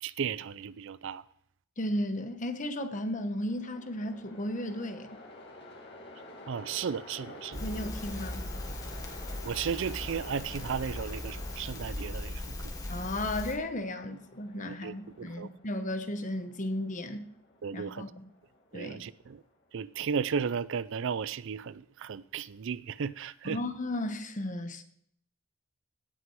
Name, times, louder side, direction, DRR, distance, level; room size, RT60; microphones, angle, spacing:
voice 1, 0.0-1.2 6.5-7.6 9.4-12.4 14.6-15.5 17.6-18.0 18.7-19.4 19.7-23.6, right 6 dB, 65° right, 0.4 m, -34 dB
voice 2, 1.8-5.1 7.6-8.5 12.9-17.3 17.7-18.3 18.7-19.0 23.4-24.8, left 1 dB, 40° left, 1.1 m, -34 dB
Train, 2.9-20.0, left 2 dB, 55° left, 2.2 m, -51 dB
Crackle, 7.5-13.6, left 1 dB, 15° left, 1.5 m, -38 dB
17.0 x 6.1 x 4.7 m
head